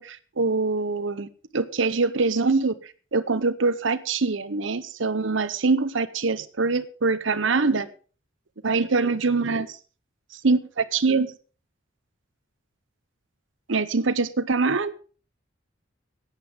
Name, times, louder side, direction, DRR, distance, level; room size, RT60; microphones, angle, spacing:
voice 1, 0.0-7.9 8.6-9.8 10.3-11.3 13.7-14.9, right 4 dB, 70° right, 12 dB, 0.8 m, -24 dB
14.0 x 9.3 x 5.3 m, 0.38 s
head